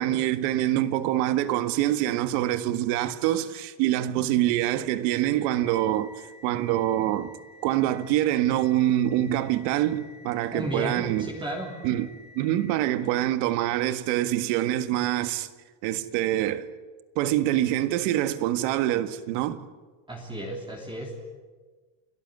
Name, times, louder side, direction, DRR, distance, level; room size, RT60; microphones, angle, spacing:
voice 1, 0.0-6.1 6.4-7.3 7.6-11.3 11.8-12.1 12.4-15.5 15.8-16.7 17.2-19.6, right 13 dB, 90° right, 1.8 m, -25 dB
sound 1, 4.8-13.4, left 3 dB, 40° right, 5.1 m, -52 dB
voice 2, 10.5-11.7 20.1-21.2, right 1 dB, 10° right, 3.2 m, -34 dB
29.5 x 18.0 x 9.7 m
cardioid pair, 160°, 48 cm